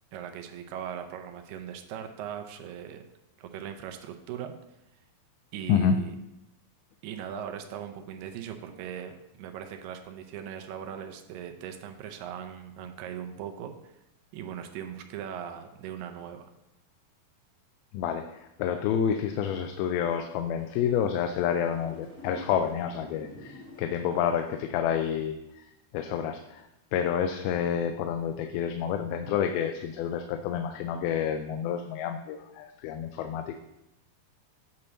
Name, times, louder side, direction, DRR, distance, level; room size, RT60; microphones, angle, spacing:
voice 1, 0.1-3.0 3.4-4.5 5.5-6.2 7.0-13.9 14.3-16.5, right 9 dB, 80° right, 5 dB, 2.1 m, -39 dB
voice 2, 17.9-25.4 25.9-26.6 26.9-33.6, left 8 dB, 85° left, 6 dB, 2.4 m, -29 dB
sound 1, 19.5-24.6, left 2 dB, 15° left, 0.6 m, -50 dB
8.6 x 2.9 x 6.3 m, 0.89 s
omnidirectional pair, 4.3 m